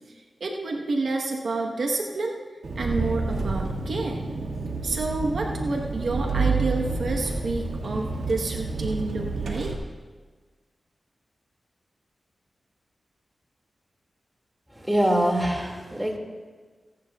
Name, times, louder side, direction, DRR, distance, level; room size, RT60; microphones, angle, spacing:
voice 1, 0.1-2.4 2.8-4.2 4.8-9.7, right 3 dB, 70° right, 1 dB, 1.1 m, -29 dB
Engine, 2.6-9.7, right 3 dB, 85° right, 1.8 m, -29 dB
voice 2, 14.8-16.2, right 1 dB, 10° right, 1 dB, 2.2 m, -24 dB
24.0 x 10.5 x 2.4 m, 1.4 s
cardioid pair, 55°, 0 cm